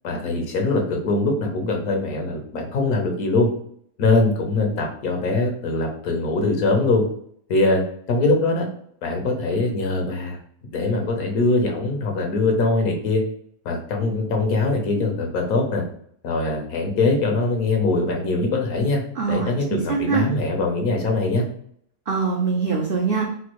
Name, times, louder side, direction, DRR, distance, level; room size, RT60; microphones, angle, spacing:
voice 1, 0.0-3.5 4.0-7.0 7.5-7.8 8.1-8.7 9.0-10.4 10.7-13.2 13.6-15.8 16.2-19.0 19.3-21.4, left 2 dB, 75° left, 2 dB, 1.4 m, -22 dB
voice 2, 19.2-20.3 22.1-23.3, right 5 dB, 55° right, -1 dB, 0.6 m, -23 dB
4.3 x 2.3 x 3.0 m, 0.65 s
omnidirectional pair, 1.5 m